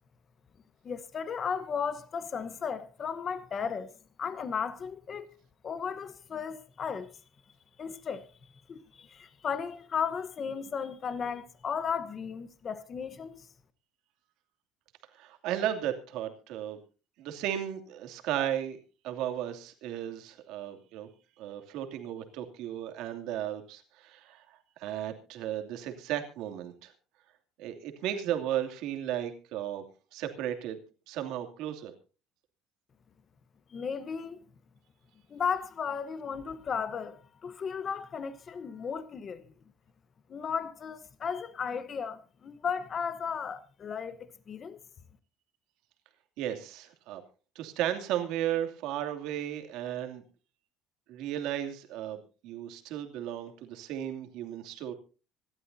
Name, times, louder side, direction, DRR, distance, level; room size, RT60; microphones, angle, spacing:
voice 1, 0.8-3.9 4.2-5.3 5.6-7.1 7.8-8.3 8.7-13.5 33.7-34.4 35.3-39.5 40.3-44.8, left 6 dB, 25° left, 1.0 m, -35 dB
voice 2, 15.2-16.8 17.2-18.8 19.0-21.1 21.4-24.4 24.8-26.9 27.6-29.8 30.1-30.8 31.1-31.9 46.4-47.2 47.5-50.2 51.1-54.9, right 11 dB, 65° right, 2.7 m, -35 dB
26.0 x 12.5 x 2.7 m
cardioid pair, 170°, 0 cm